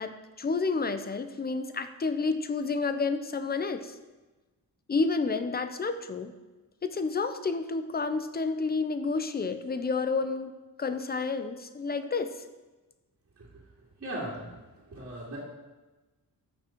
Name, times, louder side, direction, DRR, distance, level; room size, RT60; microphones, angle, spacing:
voice 1, 0.0-4.0 4.9-6.3 6.8-10.5 10.8-12.3, left 4 dB, 25° left, 10 dB, 0.6 m, -30 dB
voice 2, 14.0-14.5 14.9-15.4, right 1 dB, 40° right, -7 dB, 2.5 m, -37 dB
13.5 x 6.2 x 4.5 m, 1.2 s
wide cardioid pair, 165°, 37 cm